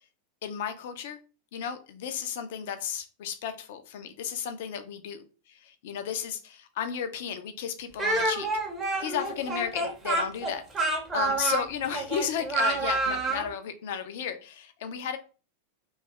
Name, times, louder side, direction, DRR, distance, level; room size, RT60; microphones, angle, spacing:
voice 1, 0.4-1.2 1.5-5.2 5.6-8.5 9.0-15.2, left 8 dB, 55° left, 8 dB, 0.4 m, -33 dB
Speech, 8.0-13.5, right 2 dB, 15° right, 0.7 m, -28 dB
2.7 x 2.3 x 3.2 m, 0.36 s
figure-of-eight pair, 90°, 0 cm